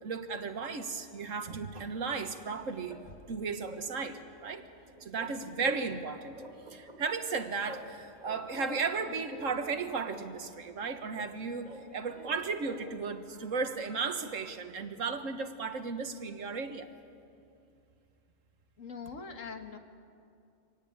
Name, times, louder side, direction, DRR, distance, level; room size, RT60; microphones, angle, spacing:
voice 1, 0.0-3.0 3.3-4.6 5.0-6.4 6.7-16.9, right 4 dB, 75° right, 8 dB, 1.7 m, -35 dB
sound 1, 2.0-3.3 3.7-3.9 4.2-6.1 6.3-7.9 8.2-10.3 11.2-13.1, equal, 35° right, 2.6 m, -47 dB
voice 2, 18.8-19.8, left 5 dB, 75° left, 5 dB, 2.0 m, -43 dB
25.5 x 18.5 x 8.7 m, 2.5 s
omnidirectional pair, 1.3 m